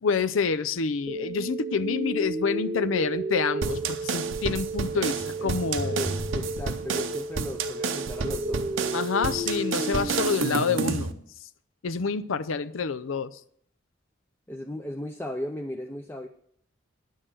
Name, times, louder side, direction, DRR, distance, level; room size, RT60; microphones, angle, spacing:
voice 1, 0.0-6.1 8.9-11.2 11.8-13.4, left 5 dB, 85° left, 13 dB, 0.5 m, -28 dB
sound 1, 1.1-11.1, right 2 dB, 20° right, 0.9 m, -33 dB
sound 2, 3.6-11.1, right 5 dB, 80° right, 0.8 m, -31 dB
voice 2, 4.9-5.6 5.8-8.7 14.5-16.3, left 1 dB, 10° left, 4 dB, 0.5 m, -36 dB
10.5 x 6.5 x 7.6 m, 0.65 s
head